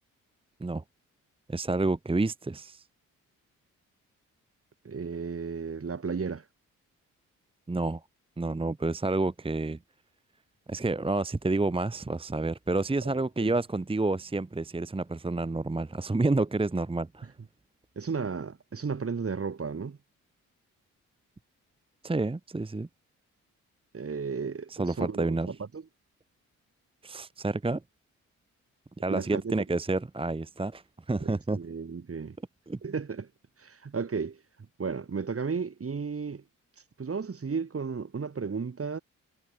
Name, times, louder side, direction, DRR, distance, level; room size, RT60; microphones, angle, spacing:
voice 1, 1.5-2.8 7.7-8.0 8.4-9.8 10.7-17.3 22.0-22.9 24.7-25.5 27.0-27.8 29.0-31.6 32.7-32.8, right 2 dB, 15° right, 1.1 m, -29 dB
voice 2, 4.8-6.4 13.0-13.5 18.0-20.0 23.9-25.8 29.1-29.5 31.2-32.4 32.8-33.3 33.6-34.4 34.8-36.4 37.0-39.0, right 5 dB, 40° right, 2.5 m, -34 dB
hypercardioid pair, 45°, 36 cm